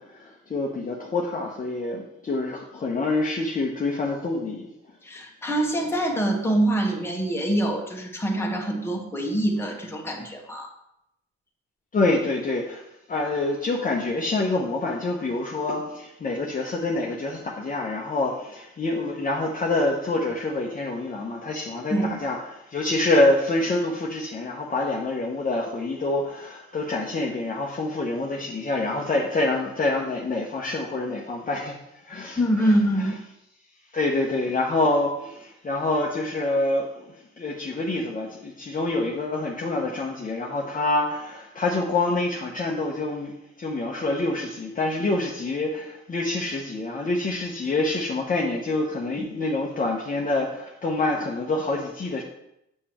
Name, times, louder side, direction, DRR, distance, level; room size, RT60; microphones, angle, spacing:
voice 1, 0.0-4.7 11.9-12.8 13.1-31.8 32.1-32.4 33.0-33.1 33.9-43.3 43.6-52.2, left 2 dB, 25° left, -2 dB, 0.8 m, -26 dB
voice 2, 5.0-10.7 21.9-22.2 32.4-33.1 49.2-49.3, right 1 dB, 10° left, 0 dB, 1.2 m, -25 dB
6.7 x 6.4 x 3.0 m, 0.83 s
cardioid pair, 90°, 30 cm